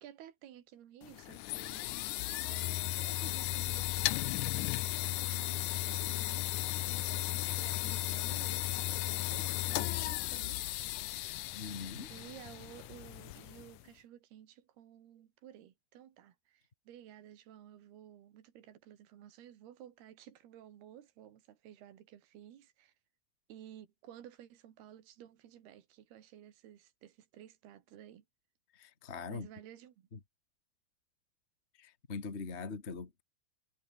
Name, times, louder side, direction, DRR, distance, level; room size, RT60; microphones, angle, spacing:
voice 1, 0.0-10.6 11.3-11.5 12.1-22.9 23.5-28.3 29.3-30.1, right 11 dB, 85° right, 4.1 m, -54 dB
sound 1, 1.0-13.8, left 17 dB, 80° left, 1.8 m, -35 dB
voice 2, 11.5-12.1 28.7-29.5 30.1-30.2 31.7-33.2, left 4 dB, 30° left, 1.2 m, -42 dB
omnidirectional pair, 4.5 m